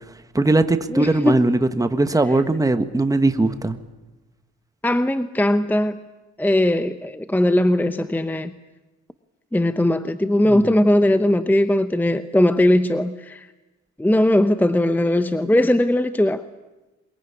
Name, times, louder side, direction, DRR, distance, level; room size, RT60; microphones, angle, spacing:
voice 1, 0.3-3.8 10.5-10.7, right 2 dB, 10° right, 9 dB, 1.4 m, -19 dB
voice 2, 0.9-1.5 4.8-6.0 6.4-8.5 9.5-13.5 14.0-16.4, left 1 dB, 5° left, 11 dB, 0.8 m, -19 dB
22.5 x 21.5 x 9.9 m, 1.1 s
cardioid pair, 90°, 30 cm